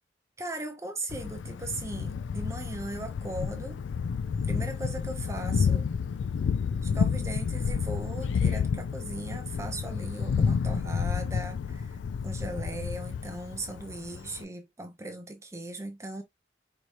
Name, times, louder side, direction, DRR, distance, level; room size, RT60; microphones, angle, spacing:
voice 1, 0.4-3.8 4.4-5.9 6.8-16.2, right 2 dB, 15° right, 0.6 m, -38 dB
Thunder, 1.1-14.4, left 6 dB, 90° left, 0.3 m, -30 dB
4.7 x 2.9 x 2.4 m
head